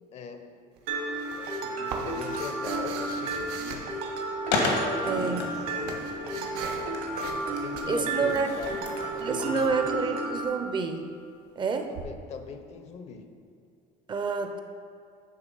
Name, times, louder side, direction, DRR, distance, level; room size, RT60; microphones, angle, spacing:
voice 1, 0.1-0.6 1.3-3.9 4.6-5.6 7.5-8.8 9.1-10.1 11.9-13.3, left 5 dB, 45° left, 7 dB, 0.5 m, -40 dB
sound 1, 0.8-4.6 5.3-6.9 7.1-7.5 7.7-9.7 11.9-12.0, right 4 dB, 85° right, 0.9 m, -42 dB
Mallet percussion, 0.9-10.5, right 2 dB, 65° right, 1.1 m, -32 dB
Skateboard, 4.5-10.0, left 2 dB, 85° left, 1.4 m, -34 dB
voice 2, 5.0-5.5 7.9-8.5 9.2-11.1 11.6-11.9 14.1-14.6, right 5 dB, 30° right, 6 dB, 0.5 m, -28 dB
9.3 x 3.3 x 5.3 m, 2.4 s
cardioid pair, 140°, 16 cm